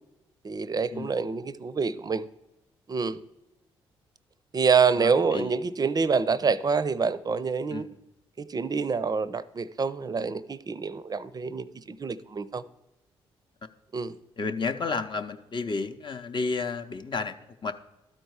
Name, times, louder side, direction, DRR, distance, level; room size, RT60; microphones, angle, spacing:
voice 1, 0.4-2.2 2.9-3.2 4.5-7.9 8.4-12.6 13.9-14.2, right 5 dB, 30° right, 0.5 m, -26 dB
voice 2, 4.9-5.5 7.7-8.0 14.4-17.7, left 4 dB, 40° left, 0.7 m, -32 dB
12.5 x 4.4 x 4.7 m
hypercardioid pair, 45°, 13 cm